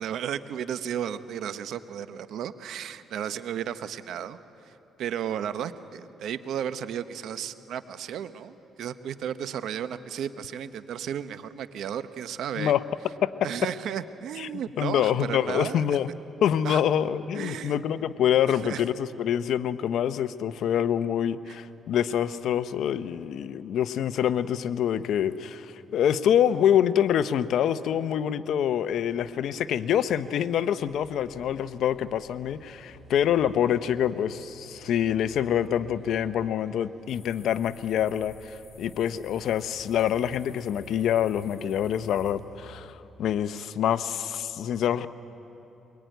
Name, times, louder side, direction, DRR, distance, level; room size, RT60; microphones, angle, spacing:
voice 1, 0.0-4.4 4.7-4.8 5.0-12.7 13.4-15.8 16.6-16.8 17.3-17.8 18.6-18.8 21.5-21.6, right 9 dB, 75° right, 12 dB, 1.0 m, -34 dB
voice 2, 14.4-16.1 16.4-45.1, left 9 dB, 75° left, 13 dB, 0.8 m, -26 dB
sound 1, 29.1-42.8, right 3 dB, 40° right, 6.7 m, -53 dB
sound 2, 37.1-42.3, left 5 dB, 45° left, 5.8 m, -55 dB
23.0 x 23.0 x 9.3 m, 3.0 s
cardioid pair, 90°, 0 cm